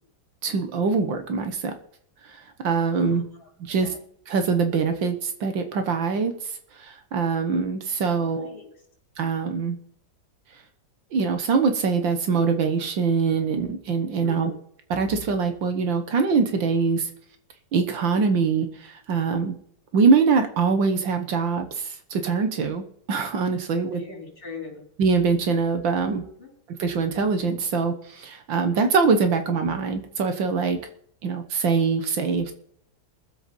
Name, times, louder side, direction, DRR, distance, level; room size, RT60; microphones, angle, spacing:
voice 1, 0.4-1.7 2.3-3.3 3.6-3.9 4.3-6.3 6.8-8.6 9.2-9.8 11.1-14.5 14.9-17.1 17.7-19.6 19.9-24.0 25.0-26.2 26.8-30.8 31.2-32.5, right 5 dB, 70° right, 7 dB, 2.0 m, -23 dB
voice 2, 2.9-4.0 8.2-8.7 14.2-14.6 23.9-24.9 26.2-26.5, left 4 dB, 25° left, -1 dB, 4.5 m, -41 dB
19.0 x 7.9 x 5.4 m, 0.65 s
omnidirectional pair, 2.1 m